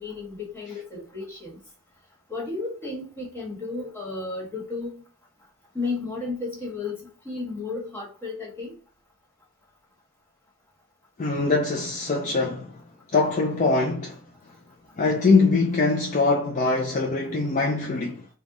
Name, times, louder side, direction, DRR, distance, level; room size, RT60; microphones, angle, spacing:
voice 1, 0.0-1.6 2.3-4.9 5.7-8.8, left 3 dB, 10° left, 1.4 m, -33 dB
voice 2, 11.2-12.8 13.1-14.2 15.0-18.3, left 3 dB, 35° left, 0.4 m, -23 dB
3.5 x 2.2 x 3.7 m
head